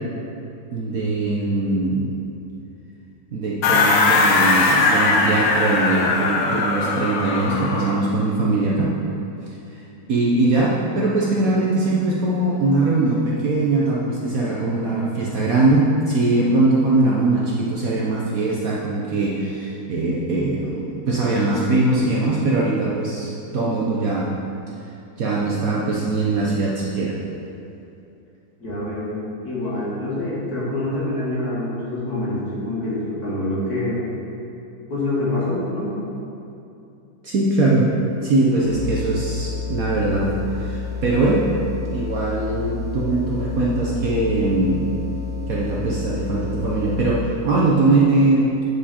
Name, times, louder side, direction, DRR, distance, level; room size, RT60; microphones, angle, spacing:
voice 1, 0.7-2.1 3.3-8.9 9.7-9.8 10.1-24.3 25.2-27.2 37.2-37.9 38.2-40.3 40.6-41.4 41.9-44.9 45.5-48.6, right 2 dB, 60° right, -4 dB, 1.0 m, -21 dB
sound 1, 3.6-8.0, left 3 dB, 75° left, 1.4 m, -19 dB
voice 2, 28.6-29.1 29.4-34.0 34.9-36.0, left 1 dB, 55° left, -8 dB, 2.5 m, -26 dB
sound 2, 38.6-47.3, left 6 dB, 35° left, 1.8 m, -30 dB
9.6 x 4.9 x 4.2 m, 2.7 s
omnidirectional pair, 2.1 m